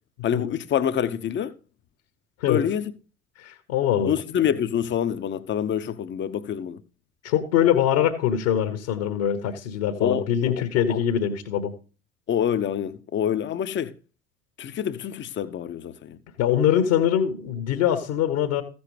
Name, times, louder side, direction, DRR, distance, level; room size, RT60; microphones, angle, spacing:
voice 1, 0.2-1.5 2.5-2.9 4.0-6.8 10.0-10.6 10.9-11.0 12.3-13.9 14.6-16.2, left 9 dB, 30° left, 0.7 m, -26 dB
voice 2, 3.4-4.1 7.2-11.7 16.4-18.6, left 10 dB, 60° left, 1.3 m, -23 dB
14.5 x 6.9 x 3.3 m
figure-of-eight pair, 65°, 41 cm